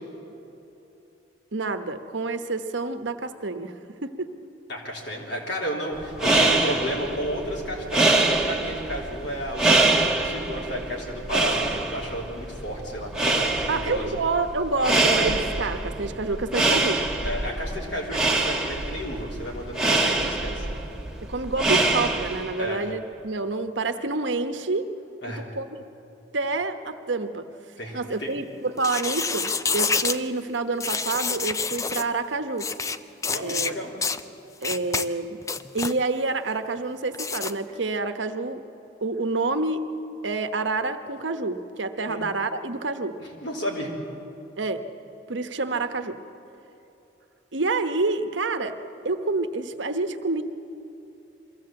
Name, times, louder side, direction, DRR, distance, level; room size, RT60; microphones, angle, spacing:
voice 1, 1.5-3.7 4.0-4.3 13.7-17.1 21.2-24.9 25.5-25.8 26.3-27.5 27.9-32.7 33.4-33.8 34.6-35.4 35.7-38.6 39.0-39.9 40.2-43.2 44.6-44.8 45.3-46.2 47.5-48.8 49.0-50.4, right 3 dB, 75° right, 8 dB, 1.0 m, -28 dB
voice 2, 4.7-13.1 13.6-14.2 17.2-20.7 22.6-22.8 25.2-25.4 27.8-28.3 33.3-33.9 42.0-42.2 43.2-43.9, equal, 65° left, -2 dB, 3.6 m, -32 dB
sound 1, 6.0-22.6, right 2 dB, 5° right, 1.4 m, -25 dB
sound 2, 28.8-30.2 30.8-32.1 32.6-33.0 33.2-33.7 34.0-34.2 34.6-35.1 35.4-35.9 37.1-37.5, left 4 dB, 15° left, 0.4 m, -27 dB
23.0 x 15.5 x 7.6 m, 2.9 s
head